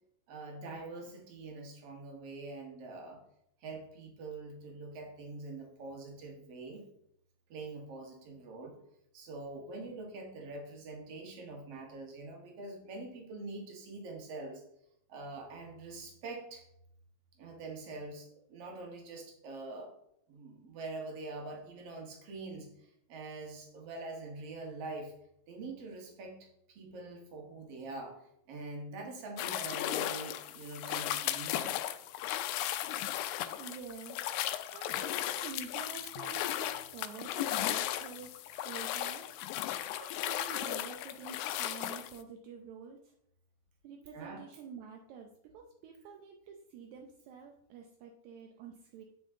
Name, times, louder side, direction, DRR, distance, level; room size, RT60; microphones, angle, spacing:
voice 1, 0.3-3.2 3.6-6.8 7.5-8.8 9.1-14.6 15.1-16.6 17.4-19.9 20.3-25.1 25.5-28.2 28.5-31.8 44.1-44.4, right 3 dB, 55° right, 2 dB, 2.5 m, -44 dB
sound 1, 29.4-42.2, left 13 dB, 85° left, 2.0 m, -36 dB
voice 2, 33.6-39.3 40.0-43.1 43.8-49.0, right 6 dB, 80° right, 2 dB, 2.1 m, -48 dB
9.2 x 6.3 x 3.7 m, 0.75 s
omnidirectional pair, 3.4 m